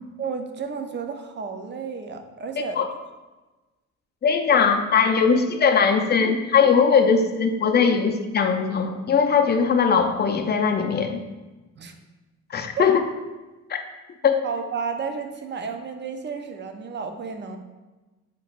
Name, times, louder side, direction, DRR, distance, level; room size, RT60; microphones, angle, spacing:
voice 1, 0.2-2.8 11.8-11.9 12.8-12.9 14.4-17.6, right 5 dB, 35° right, 6 dB, 0.6 m, -32 dB
voice 2, 4.2-11.2 12.5-13.0 13.7-13.8 14.2-14.3, left 6 dB, 35° left, 5 dB, 0.5 m, -20 dB
6.8 x 3.0 x 2.5 m, 1.2 s
cardioid pair, 90°, 30 cm